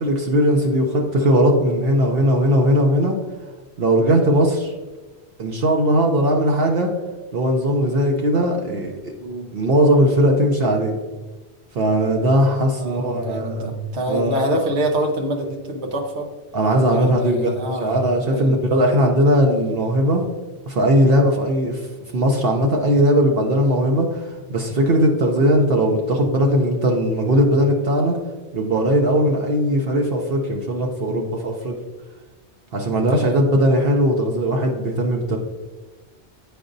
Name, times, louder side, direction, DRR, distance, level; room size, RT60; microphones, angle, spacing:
voice 1, 0.0-3.2 3.8-4.7 5.4-6.9 7.3-9.1 9.5-11.0 11.7-13.7 14.1-14.5 16.5-17.5 17.8-20.2 20.7-21.9 22.1-28.2 28.5-31.7 32.7-35.4, equal, 65° right, 1 dB, 0.9 m, -19 dB
voice 2, 12.8-16.3 16.9-18.0 18.3-18.6 31.1-31.3 32.9-33.4, right 1 dB, 85° right, 2 dB, 1.2 m, -26 dB
8.4 x 4.8 x 2.6 m, 1.3 s
omnidirectional pair, 1.1 m